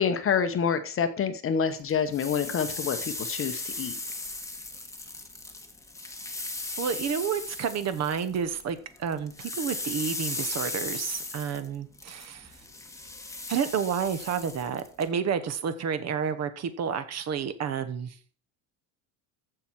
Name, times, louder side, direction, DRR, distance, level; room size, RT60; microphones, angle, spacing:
voice 1, 0.0-3.9, left 7 dB, 30° left, 10 dB, 0.9 m, -27 dB
sound 1, 1.9-8.7 9.0-15.1, left 2 dB, 5° left, 1.1 m, -37 dB
voice 2, 6.8-12.5 13.5-18.1, right 7 dB, 40° right, 12 dB, 1.0 m, -30 dB
14.5 x 5.7 x 4.6 m, 0.42 s
cardioid pair, 160°, 43 cm